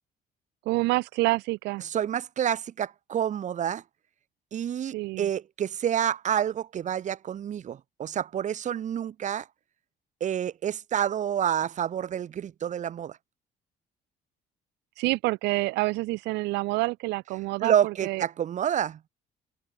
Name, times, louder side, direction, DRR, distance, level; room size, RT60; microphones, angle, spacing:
voice 1, 0.7-1.8 4.9-5.3 15.0-18.2, right 21 dB, 85° right, 0.6 m, -27 dB
voice 2, 1.8-3.8 4.5-9.5 10.2-13.2 17.6-19.0, right 9 dB, 45° right, 1.2 m, -28 dB
open air
cardioid pair, 110°, 17 cm